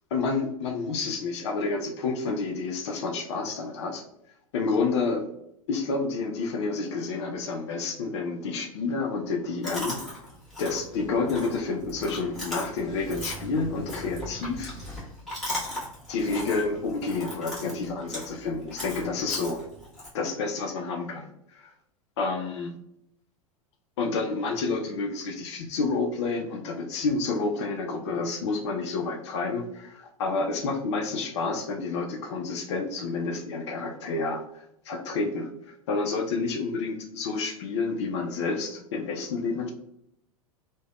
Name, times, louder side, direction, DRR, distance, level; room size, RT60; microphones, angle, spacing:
voice 1, 0.1-4.0 4.5-5.3 5.7-10.0 10.6-14.7 16.1-19.6 20.1-21.7 22.2-22.7 24.0-39.7, left 4 dB, 50° left, 3 dB, 0.5 m, -29 dB
Chewing mastication, 9.6-20.1, left 1 dB, ahead, 1.4 m, -38 dB
3.3 x 2.2 x 2.2 m, 0.75 s
figure-of-eight pair, 90°, 19 cm